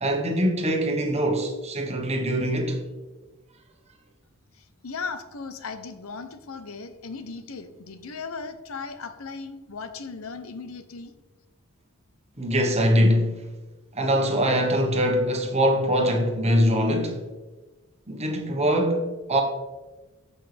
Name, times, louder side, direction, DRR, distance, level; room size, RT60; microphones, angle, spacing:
voice 1, 0.0-2.8 12.4-13.5 13.9-17.2 18.1-19.4, equal, 30° right, 1.3 m, -23 dB
voice 2, 4.5-11.1, left 4 dB, 75° left, 0.8 m, -37 dB
14.5 x 5.6 x 3.4 m
head